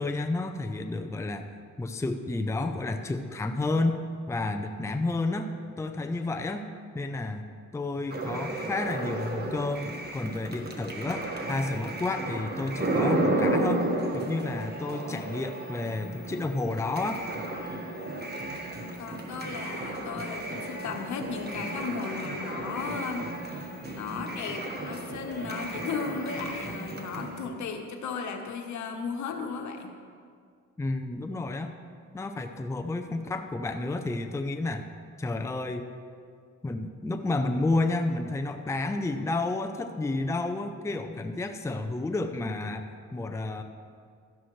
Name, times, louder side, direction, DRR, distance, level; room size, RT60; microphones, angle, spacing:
voice 1, 0.0-1.5 1.8-4.0 4.3-5.5 5.8-6.7 6.9-7.4 7.7-13.8 14.1-17.2 30.8-31.7 32.1-34.8 35.2-35.9 36.6-43.6, left 2 dB, 10° left, 6 dB, 0.6 m, -31 dB
sound 1, 8.1-27.5, right 2 dB, 35° right, 1.4 m, -33 dB
voice 2, 19.0-29.9, left 5 dB, 70° left, 4 dB, 1.2 m, -35 dB
12.5 x 10.5 x 3.2 m, 2.1 s
cardioid pair, 90°, 30 cm